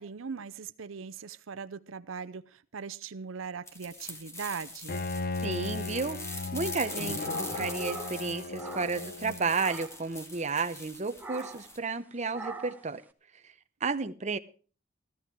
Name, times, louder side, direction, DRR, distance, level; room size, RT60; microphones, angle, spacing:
voice 1, 0.0-5.0, right 6 dB, 80° right, 0.6 m, -40 dB
sound 1, 3.7-11.8, left 1 dB, 15° left, 1.9 m, -43 dB
Bowed string instrument, 4.9-9.7, left 3 dB, 50° left, 0.6 m, -36 dB
voice 2, 5.4-6.2 6.5-13.0 13.4-13.5 13.8-14.4, right 4 dB, 35° right, 0.9 m, -32 dB
sound 2, 6.8-9.2 9.5-10.1 11.2-11.7 12.3-12.9, right 3 dB, 10° right, 1.1 m, -43 dB
14.5 x 14.0 x 4.6 m
head